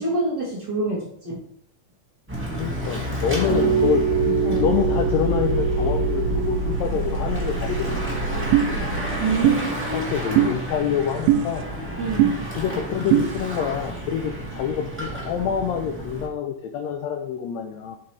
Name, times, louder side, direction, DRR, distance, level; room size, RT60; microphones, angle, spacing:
voice 1, 0.0-1.4 4.4-4.7 9.2-10.1 12.0-12.5, right 2 dB, 45° right, -5 dB, 1.5 m, -27 dB
Bicycle / Mechanisms, 2.3-16.3, equal, 5° right, 0.9 m, -31 dB
voice 2, 2.6-4.0 4.6-8.0 8.3-8.9 9.9-11.8 12.6-18.0, left 7 dB, 85° left, 5 dB, 1.5 m, -27 dB
sound 1, 3.4-9.4, right 3 dB, 65° left, 2.4 m, -24 dB
sound 2, 8.5-8.7 9.4-9.6 10.4-10.5 11.3-11.4 12.2-12.3 13.1-13.3, right 12 dB, 85° right, 2.2 m, -16 dB
7.7 x 5.8 x 3.3 m, 0.67 s
omnidirectional pair, 3.8 m